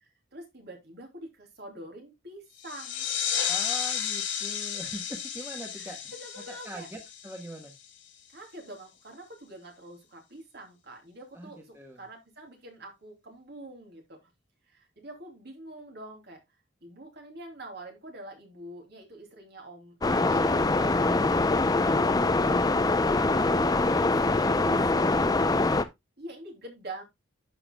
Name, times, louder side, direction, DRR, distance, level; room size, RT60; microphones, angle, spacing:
voice 1, 0.3-3.1 5.8-6.9 8.3-14.3 14.7-16.4 16.8-21.6 23.0-25.2 26.2-27.0, right 1 dB, 60° right, 3 dB, 2.9 m, -45 dB
sound 1, 2.6-7.9, left 8 dB, 85° left, 2.3 m, -33 dB
voice 2, 3.5-6.1 6.5-7.7 11.3-12.0, right 1 dB, 15° right, 2 dB, 1.4 m, -42 dB
sound 2, 20.0-25.8, left 2 dB, 20° left, 0.6 m, -24 dB
11.0 x 7.0 x 2.3 m, 0.19 s
head